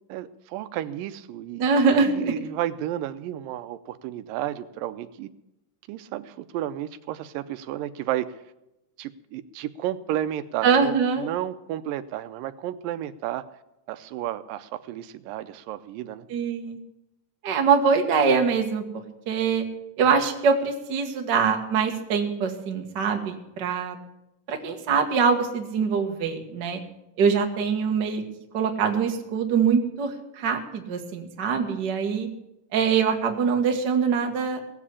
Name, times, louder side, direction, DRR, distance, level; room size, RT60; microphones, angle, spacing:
voice 1, 0.1-1.7 2.1-5.3 5.9-8.4 9.0-13.4 13.9-16.3, right 12 dB, 85° right, 12 dB, 2.3 m, -32 dB
voice 2, 1.6-2.3 10.6-11.2 16.3-16.8 17.4-19.6 20.0-24.0 24.5-26.8 27.2-28.2 28.5-32.3 32.7-34.6, right 5 dB, 45° right, 4 dB, 1.6 m, -23 dB
17.5 x 7.5 x 8.3 m, 0.88 s
omnidirectional pair, 3.9 m